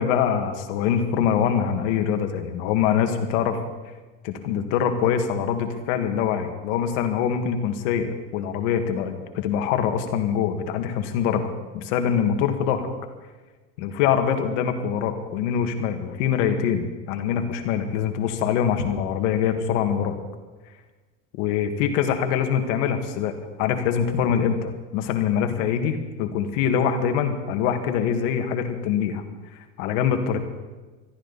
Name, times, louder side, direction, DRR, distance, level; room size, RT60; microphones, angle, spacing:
voice 1, 0.0-3.6 4.2-12.9 13.8-20.2 21.4-23.3 23.6-29.2 29.8-30.4, left 8 dB, 80° left, 6 dB, 2.1 m, -24 dB
21.5 x 14.0 x 4.2 m, 1.3 s
supercardioid pair, 135°, 35 cm